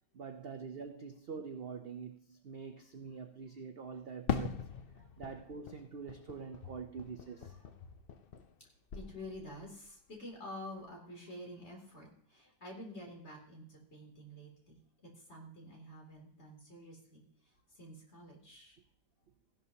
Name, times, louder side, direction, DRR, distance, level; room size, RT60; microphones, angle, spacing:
voice 1, 0.1-4.7 5.2-7.5, right 5 dB, 65° right, 0.5 m, -45 dB
Fireworks, 4.3-8.6 8.9-9.7, left 7 dB, 85° left, 0.5 m, -41 dB
voice 2, 7.4-8.0 8.9-18.8, left 1 dB, 40° left, 3.1 m, -49 dB
15.5 x 11.5 x 2.8 m
omnidirectional pair, 1.8 m